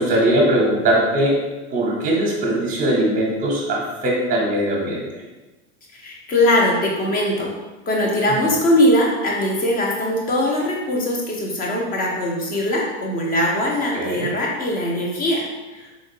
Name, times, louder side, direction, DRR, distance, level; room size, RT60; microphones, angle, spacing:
voice 1, 0.0-1.4 1.7-5.2 13.9-14.3, right 1 dB, 20° right, -2 dB, 0.8 m, -20 dB
voice 2, 5.9-7.5 7.9-15.5 15.7-15.9, left 1 dB, 25° left, -1 dB, 0.6 m, -21 dB
3.7 x 2.4 x 2.7 m, 1.1 s
supercardioid pair, 130°, 37 cm